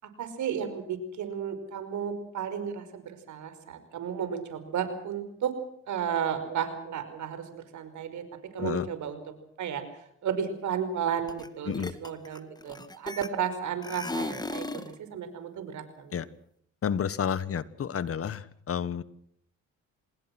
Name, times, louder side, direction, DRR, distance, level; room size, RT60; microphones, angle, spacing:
voice 1, 0.0-5.5 5.9-16.2, right 8 dB, 70° right, 10 dB, 5.4 m, -33 dB
sound 1, 11.3-11.5 11.7-13.5 13.8-14.9, left 2 dB, 15° left, 2.0 m, -36 dB
voice 2, 16.8-19.0, left 8 dB, 50° left, 16 dB, 1.4 m, -30 dB
27.5 x 20.5 x 6.1 m, 0.69 s
cardioid pair, 90°, 30 cm